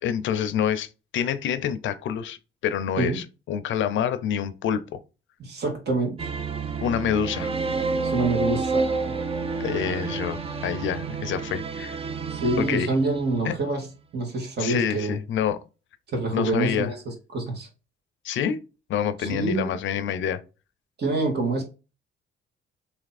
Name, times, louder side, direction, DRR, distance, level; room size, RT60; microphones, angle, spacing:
voice 1, 0.0-5.0 6.8-7.6 9.6-12.0 12.6-12.9 13.4-13.5 14.6-15.6 16.3-16.9 18.2-18.6 18.9-20.4, left 8 dB, 75° left, 0.6 m, -27 dB
voice 2, 5.4-6.3 8.0-9.1 12.3-13.9 14.1-15.1 16.1-17.7 19.2-19.7 21.0-21.6, right 2 dB, 55° right, 1.8 m, -26 dB
sound 1, 6.2-13.7, right 4 dB, 30° right, 0.6 m, -29 dB
3.4 x 2.8 x 4.1 m
cardioid pair, 90°, 20 cm